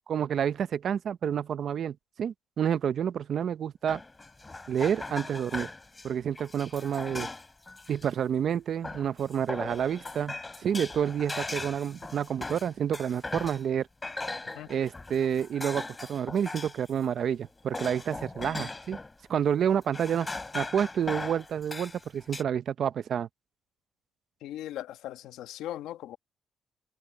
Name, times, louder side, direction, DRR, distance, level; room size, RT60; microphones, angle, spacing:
voice 1, 0.1-4.0 4.7-5.7 6.0-7.3 7.9-13.9 14.7-19.0 19.3-20.3 20.5-23.3, right 8 dB, 60° right, 0.8 m, -29 dB
sound 1, 3.9-8.1 8.8-13.7 14.0-16.9 17.2-19.1 19.6-22.4, left 3 dB, 20° left, 4.6 m, -39 dB
voice 2, 24.4-26.2, left 13 dB, 90° left, 1.6 m, -39 dB
cardioid pair, 90°, 0 cm